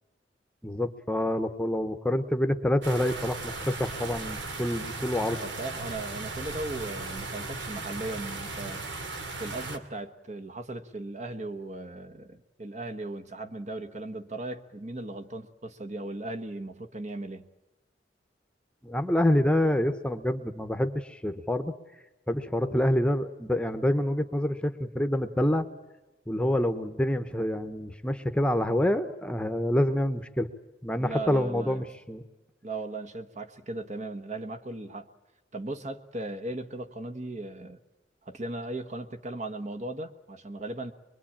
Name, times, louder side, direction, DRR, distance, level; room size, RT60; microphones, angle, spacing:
voice 1, 0.6-5.4 18.8-21.7 22.3-25.7 26.3-30.5 30.8-32.2, left 1 dB, 5° left, 9 dB, 1.0 m, -27 dB
sound 1, 2.8-9.8, right 3 dB, 85° right, 2.6 m, -37 dB
voice 2, 5.4-8.8 9.4-17.5 31.0-31.9 32.6-35.1 35.5-37.8 38.2-40.9, right 2 dB, 40° right, 8 dB, 1.3 m, -37 dB
23.5 x 23.0 x 8.8 m, 1.0 s
head